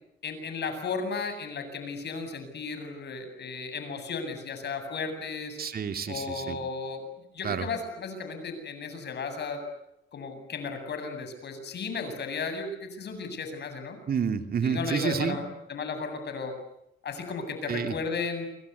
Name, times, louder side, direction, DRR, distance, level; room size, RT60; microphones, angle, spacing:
voice 1, 0.2-5.6 6.1-9.6 10.1-14.0 14.6-16.5 17.0-18.5, left 4 dB, 60° left, 8 dB, 8.0 m, -34 dB
voice 2, 5.6-6.6 7.4-7.7 14.1-15.4 17.7-17.9, right 6 dB, 50° right, 7 dB, 2.6 m, -29 dB
29.0 x 24.0 x 8.4 m, 0.82 s
cardioid pair, 90°, 20 cm